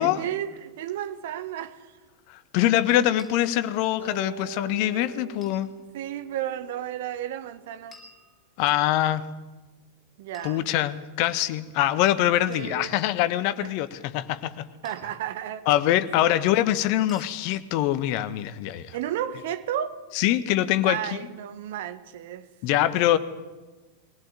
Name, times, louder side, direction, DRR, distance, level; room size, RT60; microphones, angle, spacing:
voice 1, 0.0-2.0 3.2-3.3 5.9-8.0 10.2-10.7 12.5-13.0 13.6-13.7 14.8-15.7 16.2-16.5 18.9-20.0 20.8-22.5 22.9-23.2, right 11 dB, 55° right, 1.6 m, -33 dB
voice 2, 2.3-5.7 8.6-9.2 10.4-14.7 15.7-18.9 20.1-21.0 22.6-23.2, left 13 dB, 45° left, 1.3 m, -24 dB
sound 1, 3.2-3.3 5.4-5.7 7.9-8.8 10.3-11.2 12.5-12.8 14.8-15.3 17.1-17.4, left 2 dB, 15° left, 6.1 m, -52 dB
Acoustic guitar, 4.0-7.3, right 6 dB, 75° right, 3.4 m, -43 dB
23.0 x 18.0 x 9.5 m
figure-of-eight pair, 90°, 0 cm